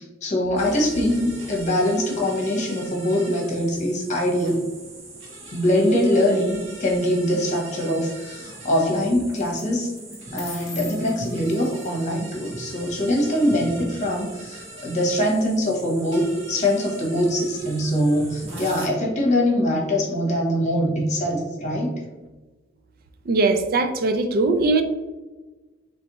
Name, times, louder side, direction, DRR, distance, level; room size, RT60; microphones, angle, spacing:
voice 1, 0.0-4.6 5.5-9.9 10.3-21.9, left 1 dB, 40° left, -1 dB, 1.1 m, -23 dB
sound 1, 0.6-18.9, right 2 dB, 85° right, 1.4 m, -40 dB
sound 2, 6.5-7.0 9.3-9.6 10.0-12.0, left 4 dB, 15° left, 0.8 m, -41 dB
voice 2, 23.3-24.8, right 3 dB, 50° right, 7 dB, 0.4 m, -20 dB
4.0 x 3.4 x 3.0 m, 1.2 s
head